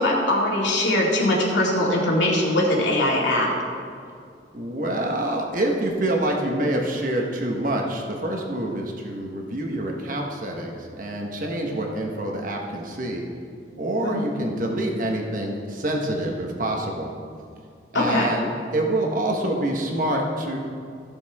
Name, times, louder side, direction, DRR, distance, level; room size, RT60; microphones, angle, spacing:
voice 1, 0.0-3.5 14.0-14.3 17.9-18.3, left 1 dB, 80° left, -3 dB, 2.2 m, -21 dB
voice 2, 4.5-13.2 13.8-17.1 17.9-20.6, right 1 dB, 45° right, 1 dB, 1.3 m, -26 dB
15.5 x 6.9 x 3.6 m, 2.3 s
head